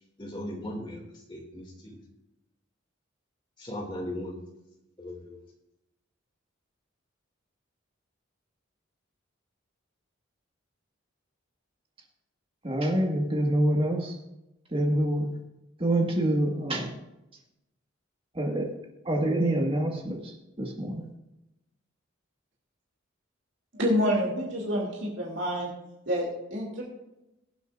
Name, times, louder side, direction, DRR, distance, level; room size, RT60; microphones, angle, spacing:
voice 1, 0.2-2.0 3.6-4.4 5.0-5.4, left 1 dB, 25° left, -1 dB, 2.4 m, -38 dB
voice 2, 12.6-14.1 14.7-15.3 15.8-16.9 18.4-18.7 19.1-20.3 20.6-21.0, right 1 dB, 25° right, 0 dB, 1.8 m, -26 dB
voice 3, 23.7-25.7 26.1-26.8, equal, 65° right, -3 dB, 2.8 m, -28 dB
22.0 x 8.2 x 2.6 m, 0.91 s
head